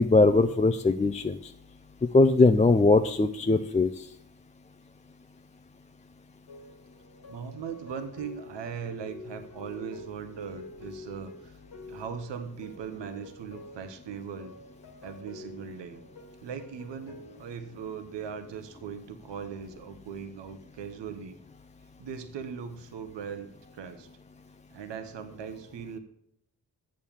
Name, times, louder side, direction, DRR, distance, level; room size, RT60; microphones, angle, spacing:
voice 1, 0.0-1.4 2.1-3.9, left 3 dB, 15° left, 7 dB, 0.4 m, -20 dB
sound 1, 6.5-17.7, left 3 dB, 70° left, 2.0 m, -48 dB
voice 2, 7.3-11.6 11.9-14.5 15.0-16.0 16.4-21.4 22.0-24.1 24.7-26.0, right 7 dB, 80° right, 8 dB, 1.0 m, -39 dB
7.2 x 6.4 x 7.2 m, 0.75 s
cardioid pair, 50°, 42 cm